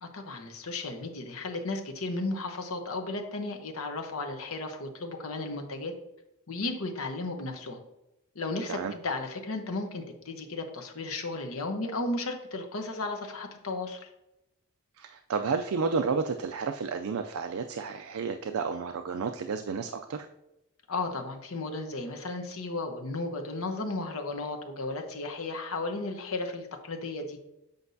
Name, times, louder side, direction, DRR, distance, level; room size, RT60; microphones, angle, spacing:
voice 1, 0.0-5.9 6.5-7.8 8.3-14.1 20.9-27.4, left 2 dB, 70° left, 4 dB, 0.9 m, -34 dB
voice 2, 15.0-20.3, right 5 dB, 70° right, 6 dB, 0.4 m, -31 dB
8.0 x 5.2 x 2.7 m, 0.88 s
head